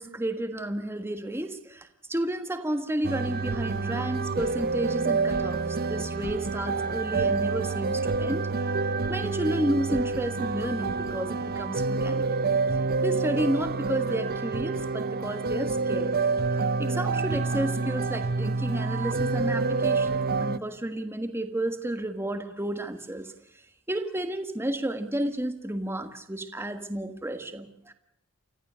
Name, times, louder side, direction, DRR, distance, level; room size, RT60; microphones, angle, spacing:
voice 1, 0.0-8.5 8.8-12.4 13.0-16.2 16.8-23.3 23.9-27.9, right 1 dB, 10° right, 7 dB, 1.5 m, -31 dB
sound 1, 3.0-20.6, right 4 dB, 50° right, 0.7 m, -28 dB
29.5 x 14.5 x 6.3 m, 0.78 s
head